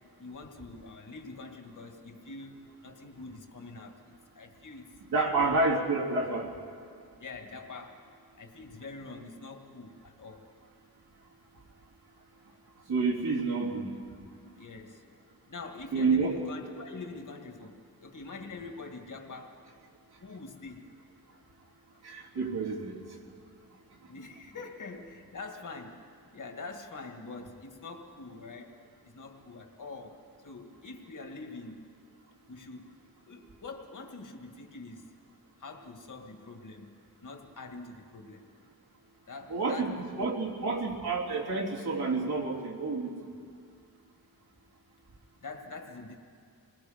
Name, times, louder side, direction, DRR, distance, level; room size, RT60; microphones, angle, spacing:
voice 1, 0.2-5.6 7.2-8.0 8.4-10.4 14.6-15.0 15.5-19.6 20.2-20.9 24.1-26.0 26.3-28.8 29.0-31.9 32.5-33.0 33.3-35.1 35.6-36.9 37.2-38.5 39.3-40.0 45.4-46.2, left 3 dB, 55° left, 3 dB, 2.1 m, -44 dB
voice 2, 5.1-6.5 12.9-13.9 15.9-16.4 22.0-23.2 39.5-43.3, right 3 dB, 80° right, -4 dB, 3.5 m, -29 dB
28.0 x 21.0 x 5.2 m, 2.3 s
wide cardioid pair, 165°, 38 cm